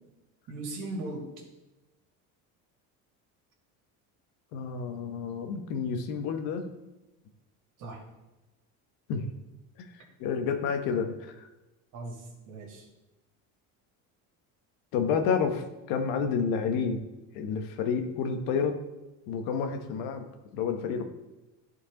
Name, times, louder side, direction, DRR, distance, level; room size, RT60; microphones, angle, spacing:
voice 1, 0.5-1.3 7.8-8.1 11.9-12.9, right 2 dB, 55° right, 0 dB, 2.4 m, -38 dB
voice 2, 4.5-6.7 9.1-9.2 9.8-9.9 10.2-11.5 14.9-17.0 17.3-18.8 19.3-20.2 20.5-21.0, left 6 dB, 75° left, 6 dB, 1.1 m, -29 dB
11.0 x 4.5 x 3.8 m, 1.1 s
cardioid pair, 110°, 37 cm